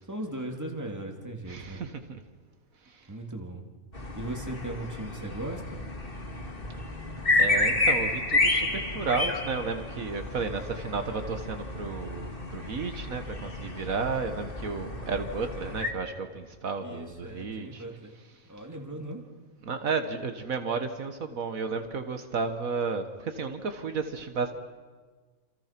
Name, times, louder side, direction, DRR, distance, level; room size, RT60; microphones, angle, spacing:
voice 1, 0.1-1.8 3.1-3.6 4.2-5.8 16.8-18.1 18.5-19.2, right 1 dB, 10° right, 2 dB, 2.8 m, -38 dB
voice 2, 1.5-2.2 2.9-3.0 7.4-17.9 19.6-24.5, right 4 dB, 75° right, 7 dB, 1.8 m, -33 dB
sound 1, 3.9-15.9, left 2 dB, 40° left, 2.3 m, -30 dB
28.0 x 27.0 x 6.0 m, 1.4 s
omnidirectional pair, 1.5 m